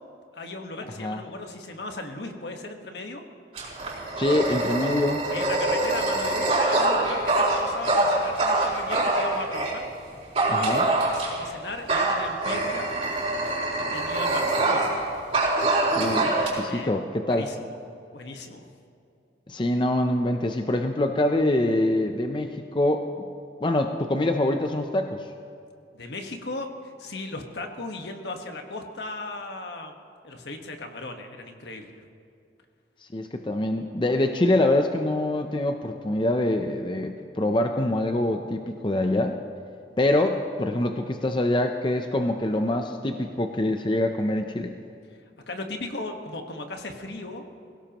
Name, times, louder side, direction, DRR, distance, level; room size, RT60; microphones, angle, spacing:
voice 1, 0.3-3.2 5.3-9.8 11.1-12.9 13.8-14.9 16.7-16.9 17.2-17.8 18.1-18.7 25.9-29.9 30.2-32.0 45.5-47.4, left 2 dB, 70° left, 4 dB, 1.4 m, -36 dB
Dog, 3.5-9.8 10.4-11.5 11.9-15.0 15.3-16.5, right 2 dB, 35° right, 4.6 m, -24 dB
voice 2, 4.2-5.2 10.5-10.9 16.0-17.5 19.5-23.0 23.6-25.3 33.1-39.4 40.0-44.7, left 1 dB, 25° left, 5 dB, 0.6 m, -25 dB
23.0 x 17.0 x 3.0 m, 2.4 s
head